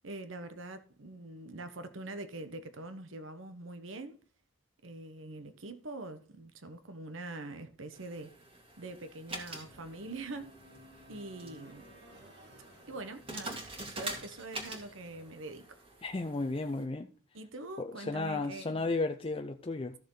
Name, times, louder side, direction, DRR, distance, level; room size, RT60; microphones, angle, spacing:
voice 1, 0.0-4.2 4.8-8.3 8.8-10.6 11.1-11.8 12.9-15.8 17.3-18.9, right 2 dB, 75° right, 1.2 m, -44 dB
sound 1, 7.9-16.8, right 2 dB, 30° right, 2.3 m, -46 dB
sound 2, 9.6-15.3, equal, 55° right, 2.3 m, -57 dB
voice 2, 16.0-17.1 17.8-20.0, left 3 dB, 30° left, 0.5 m, -34 dB
14.0 x 6.7 x 3.9 m
head